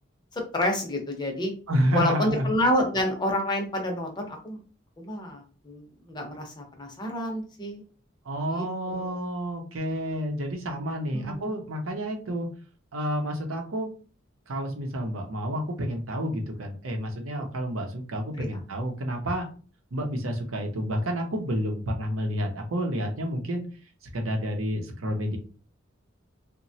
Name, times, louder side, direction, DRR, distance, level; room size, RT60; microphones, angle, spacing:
voice 1, 0.3-1.5 1.9-4.6 5.0-7.8 8.5-9.1 11.1-11.5 17.3-17.4 18.4-18.5, left 1 dB, 20° left, 2 dB, 0.6 m, -29 dB
voice 2, 1.7-2.5 8.2-12.5 12.9-13.9 14.5-19.4 19.9-23.6 24.1-25.4, equal, 90° right, 3 dB, 0.7 m, -29 dB
3.0 x 2.2 x 2.7 m, 0.38 s
head